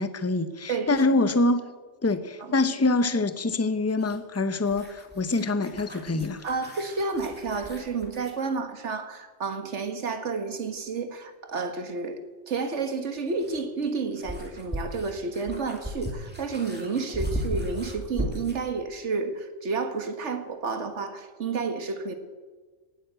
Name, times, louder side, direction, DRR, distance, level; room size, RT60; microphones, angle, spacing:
voice 1, 0.0-1.7 2.0-6.4, left 2 dB, 15° left, 11 dB, 0.6 m, -25 dB
voice 2, 0.7-1.0 2.4-2.5 6.4-22.1, right 4 dB, 60° right, 8 dB, 1.7 m, -31 dB
sound 1, 3.9-8.4 10.8-10.9 12.9-18.7, equal, 5° right, 2.4 m, -37 dB
17.0 x 9.3 x 8.1 m, 1.4 s
omnidirectional pair, 1.3 m